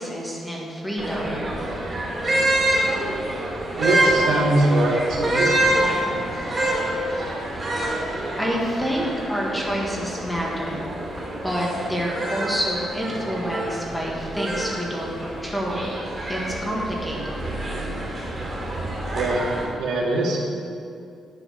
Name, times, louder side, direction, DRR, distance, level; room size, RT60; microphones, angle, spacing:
voice 1, 0.0-1.4 8.3-10.8 11.4-15.9 16.3-17.4, equal, 5° left, -4 dB, 1.6 m, -28 dB
sound 1, 1.0-19.6, right 1 dB, 15° right, 2.7 m, -26 dB
voice 2, 3.8-5.6 19.1-20.4, right 2 dB, 90° right, -3 dB, 2.2 m, -22 dB
10.5 x 6.7 x 6.3 m, 2.5 s
cardioid pair, 175°, 0 cm